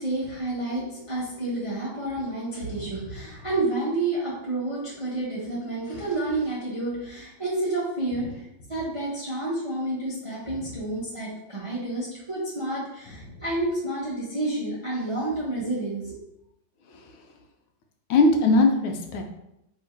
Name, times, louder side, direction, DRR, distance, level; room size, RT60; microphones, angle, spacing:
voice 1, 0.0-16.2, right 2 dB, 30° right, -7 dB, 0.6 m, -30 dB
voice 2, 18.1-19.2, left 3 dB, 80° left, 3 dB, 1.4 m, -21 dB
3.5 x 2.8 x 4.4 m, 0.82 s
omnidirectional pair, 2.3 m